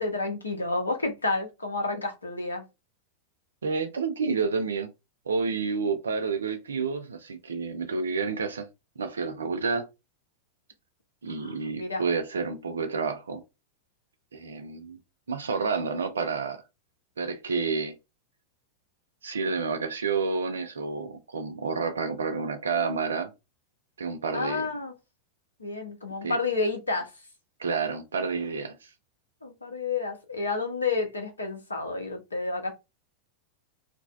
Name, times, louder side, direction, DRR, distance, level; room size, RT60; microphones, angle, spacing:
voice 1, 0.0-2.6 11.3-12.0 24.3-24.9 25.6-27.1 29.4-32.7, left 3 dB, 80° left, 0.6 m, -30 dB
voice 2, 3.6-4.9 5.3-8.7 9.0-9.9 11.2-13.4 14.3-15.0 15.3-16.6 17.2-18.0 19.2-23.3 24.0-24.6 26.2-26.4 27.6-28.9, right 4 dB, 70° right, 0.4 m, -29 dB
2.5 x 2.1 x 2.4 m
figure-of-eight pair, 90°, 0 cm